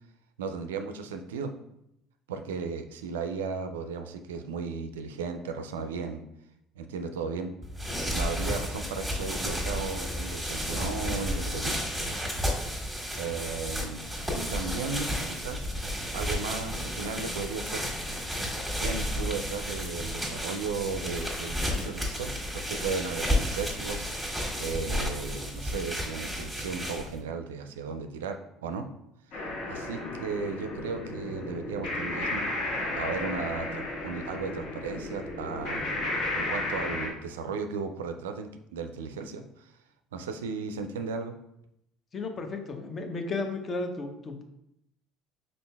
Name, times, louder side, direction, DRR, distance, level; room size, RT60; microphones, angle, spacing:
voice 1, 0.4-1.5 2.3-6.2 6.8-7.5 8.1-11.8 13.2-14.0 14.3-15.7 16.1-17.8 18.8-24.1 24.6-28.9 29.7-32.4 33.0-35.9 36.4-39.7 40.1-41.3, right 5 dB, 75° right, 7 dB, 0.3 m, -35 dB
sound 1, 7.6-27.2, equal, ahead, 1.5 m, -32 dB
sound 2, 29.3-37.1, left 2 dB, 60° left, 1.3 m, -33 dB
voice 2, 42.1-44.4, left 3 dB, 35° left, 5 dB, 0.7 m, -34 dB
5.3 x 3.9 x 2.2 m, 0.80 s
figure-of-eight pair, 60°, 0 cm